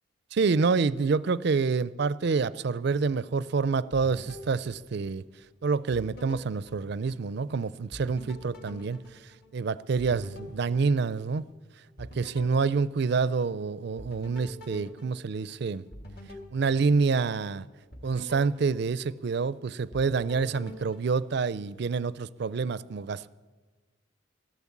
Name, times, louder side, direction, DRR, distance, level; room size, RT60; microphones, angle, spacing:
voice 1, 0.3-5.2 5.6-9.0 9.5-11.5 12.0-15.8 16.5-17.6 18.0-23.3, right 4 dB, 55° right, 0.4 m, -27 dB
sound 1, 3.9-5.5 5.9-7.5 7.9-11.6 12.0-13.6 14.0-17.5 17.9-19.5 19.9-21.9, equal, 50° left, 1.8 m, -47 dB
14.0 x 12.0 x 7.3 m
head